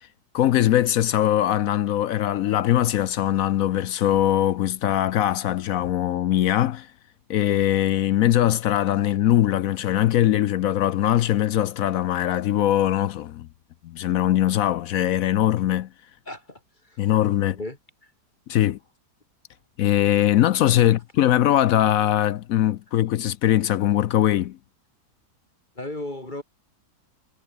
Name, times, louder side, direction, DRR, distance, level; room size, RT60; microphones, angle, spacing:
voice 1, 0.3-6.9 7.3-13.5 13.8-15.9 17.0-17.6 18.5-18.8 19.8-24.6, left 12 dB, 70° left, 0.9 m, -21 dB
voice 2, 16.3-17.1 17.5-18.1 20.8-20.9 25.7-26.4, left 1 dB, 30° left, 2.9 m, -36 dB
omnidirectional pair, 1.7 m